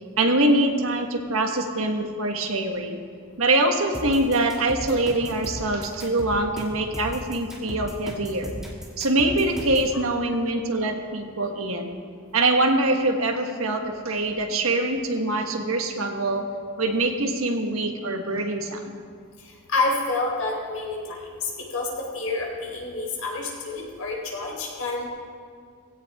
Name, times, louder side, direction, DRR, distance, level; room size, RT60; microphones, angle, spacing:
voice 1, 0.2-3.0 3.4-8.5 9.0-11.9 12.3-18.8, right 2 dB, 85° right, 3 dB, 1.5 m, -24 dB
sound 1, 3.9-9.9, right 1 dB, 5° right, 2.5 m, -36 dB
voice 2, 19.7-21.9 22.1-25.1, left 3 dB, 85° left, -2 dB, 4.2 m, -28 dB
18.0 x 16.5 x 3.6 m, 2.1 s
head